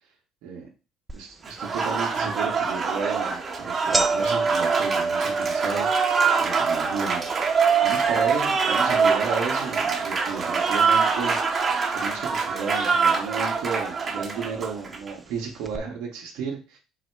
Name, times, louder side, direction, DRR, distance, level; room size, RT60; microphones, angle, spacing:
sound 1, 1.1-1.2 1.7-1.8 2.7-2.9 3.2-3.3 3.5-11.8 12.0-12.8 13.6-13.7 14.6-14.7 15.0-15.1 15.6-15.8, right 3 dB, 15° right, 0.4 m, -31 dB
voice 1, 1.1-7.5 7.8-16.8, right 5 dB, 75° right, -1 dB, 0.9 m, -33 dB
Applause, 1.4-15.1, right 5 dB, 40° right, 0.8 m, -24 dB
4.0 x 2.1 x 4.4 m, 0.34 s
hypercardioid pair, 70°, 0 cm